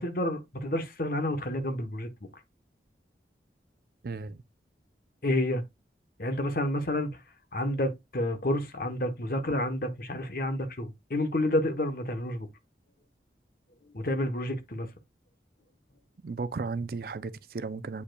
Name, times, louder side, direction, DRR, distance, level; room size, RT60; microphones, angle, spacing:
voice 1, 0.0-2.1 5.2-5.6 6.2-7.1 7.5-12.5 13.9-14.9, left 1 dB, 50° left, 1.0 m, -29 dB
voice 2, 4.0-4.4 16.2-18.0, right 4 dB, 55° right, 0.4 m, -35 dB
8.3 x 5.1 x 2.3 m
head